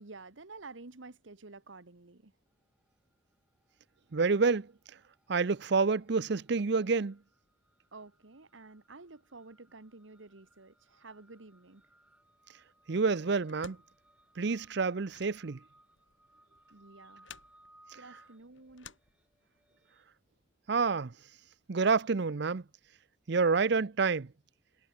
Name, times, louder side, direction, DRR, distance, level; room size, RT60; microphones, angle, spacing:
voice 1, 0.0-2.3 7.9-11.8 16.7-17.3 18.0-18.9, right 3 dB, 75° right, 1.4 m, -51 dB
sound 1, 2.5-3.2 3.4-20.0, right 1 dB, 5° right, 4.7 m, -65 dB
voice 2, 4.1-4.7 5.3-7.2 12.9-13.8 14.4-15.6 20.7-21.1 21.7-22.6 23.3-24.3, right 4 dB, 60° right, 0.6 m, -28 dB
sound 2, 13.4-19.7, left 7 dB, 75° left, 7.3 m, -56 dB
head